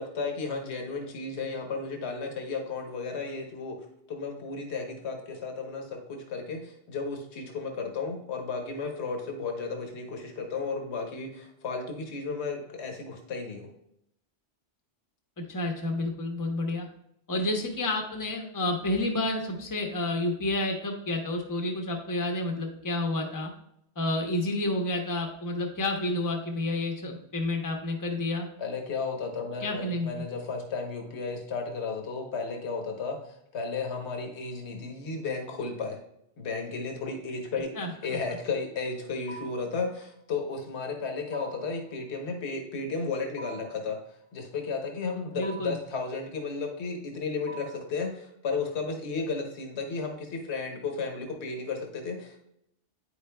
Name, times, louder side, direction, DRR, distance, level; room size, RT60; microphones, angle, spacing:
voice 1, 0.0-3.8 4.1-13.7 28.6-36.0 36.4-37.7 38.0-44.0 44.3-52.4, left 4 dB, 65° left, 3 dB, 1.3 m, -34 dB
voice 2, 15.5-16.9 17.3-23.5 24.0-28.5 29.6-30.1 37.7-37.9 45.3-45.7, left 2 dB, 20° left, 2 dB, 0.9 m, -30 dB
sound 1, 39.3-39.8 41.3-41.8 43.4-43.9 45.4-45.9 47.5-48.0, right 4 dB, 45° left, 1.0 m, -44 dB
9.3 x 5.1 x 2.2 m, 0.75 s
omnidirectional pair, 1.2 m